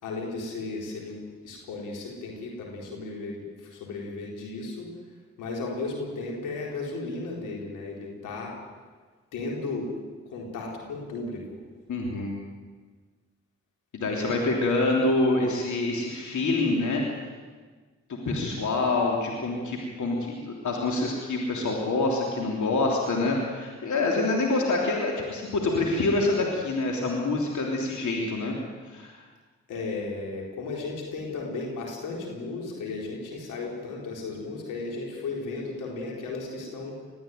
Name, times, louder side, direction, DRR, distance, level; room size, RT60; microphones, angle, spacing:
voice 1, 0.0-4.9 5.4-8.5 9.3-9.9 10.3-11.6 29.7-37.0, left 3 dB, 90° left, -1 dB, 4.2 m, -35 dB
voice 2, 11.9-12.3 13.9-17.0 18.1-28.5 28.8-29.2, left 2 dB, 70° left, -1 dB, 3.4 m, -26 dB
20.5 x 14.5 x 9.3 m, 1.4 s
supercardioid pair, 45°, 30 cm